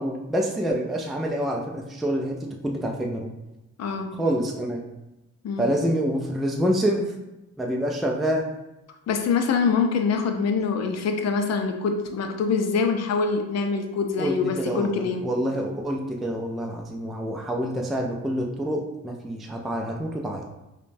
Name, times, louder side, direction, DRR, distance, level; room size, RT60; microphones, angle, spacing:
voice 1, 0.0-3.3 4.1-4.8 5.6-7.1 7.6-8.5 14.2-20.5, equal, ahead, 1 dB, 0.3 m, -27 dB
voice 2, 3.8-4.1 5.4-5.7 9.1-15.2, left 5 dB, 60° left, 5 dB, 0.6 m, -24 dB
5.0 x 2.2 x 2.6 m, 0.96 s
cardioid pair, 90°, 30 cm